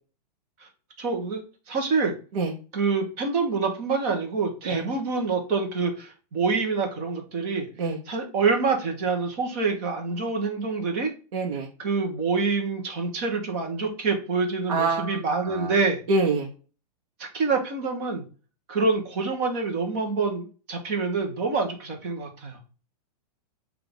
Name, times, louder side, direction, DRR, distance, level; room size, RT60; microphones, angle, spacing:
voice 1, 1.0-1.4 1.7-2.1 2.7-11.1 11.8-16.0 17.2-18.2 18.7-22.6, right 4 dB, 25° right, 3 dB, 0.7 m, -26 dB
voice 2, 11.3-11.7 14.7-15.7 16.1-16.5, right 3 dB, 55° right, -1 dB, 0.8 m, -26 dB
5.8 x 2.3 x 3.4 m, 0.36 s
supercardioid pair, 180°, 21 cm